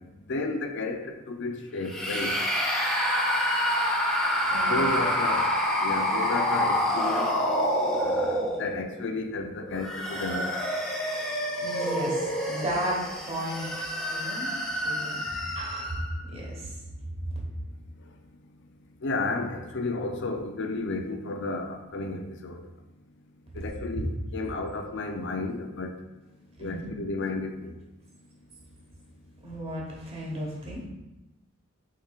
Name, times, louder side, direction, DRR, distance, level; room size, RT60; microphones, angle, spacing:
voice 1, 0.3-2.4 4.7-5.5 5.8-7.4 8.0-10.6 19.0-22.6 23.5-25.9 26.6-27.7, left 3 dB, 60° left, 5 dB, 0.5 m, -32 dB
sound 1, 1.8-8.9 9.6-16.1, equal, 5° left, 0.9 m, -27 dB
voice 2, 4.5-4.9 11.6-13.7 14.1-15.2 15.5-16.0 16.3-16.8 23.9-24.0 26.6-26.9 29.4-30.8, equal, 30° right, -3 dB, 1.2 m, -34 dB
4.9 x 4.3 x 2.4 m, 1.0 s
head